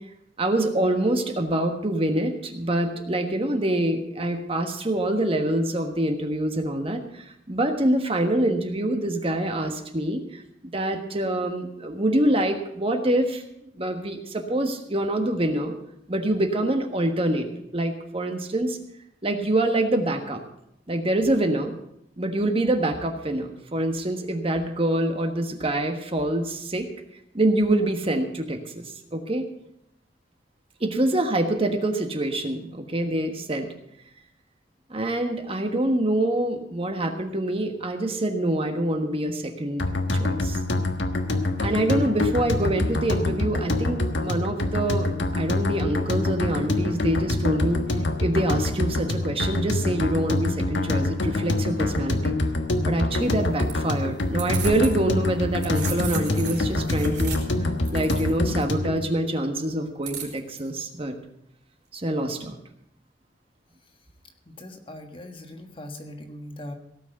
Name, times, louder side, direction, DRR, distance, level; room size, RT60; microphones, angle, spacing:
voice 1, 0.4-13.4 13.8-15.8 16.1-17.5 17.7-18.8 19.2-20.4 20.9-21.7 22.2-26.9 27.3-29.5 30.8-33.7 34.9-40.6 41.6-47.9 48.2-52.3 52.8-57.4 57.9-61.1 61.9-62.6, right 1 dB, 30° right, 5 dB, 1.4 m, -25 dB
sound 1, 39.8-59.0, left 2 dB, 80° left, 1.4 m, -26 dB
sound 2, 53.2-55.0 55.3-58.6 60.0-60.6, right 5 dB, 65° right, 4.0 m, -36 dB
voice 2, 64.4-66.7, left 1 dB, 30° left, 5 dB, 1.5 m, -40 dB
17.5 x 6.3 x 7.9 m, 0.78 s
head